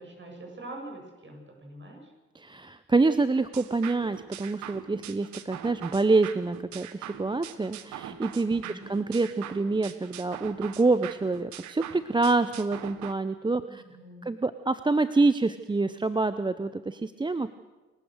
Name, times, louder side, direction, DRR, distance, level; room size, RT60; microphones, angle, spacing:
voice 1, 0.0-2.1 8.6-8.9 13.6-14.3, right 1 dB, 35° right, 2 dB, 7.7 m, -44 dB
voice 2, 2.3-13.8 14.2-17.5, right 3 dB, 15° right, 13 dB, 0.7 m, -26 dB
sound 1, 3.5-13.1, right 11 dB, 65° right, 1.3 m, -42 dB
27.5 x 15.0 x 6.6 m, 1.2 s
hypercardioid pair, 45°, 31 cm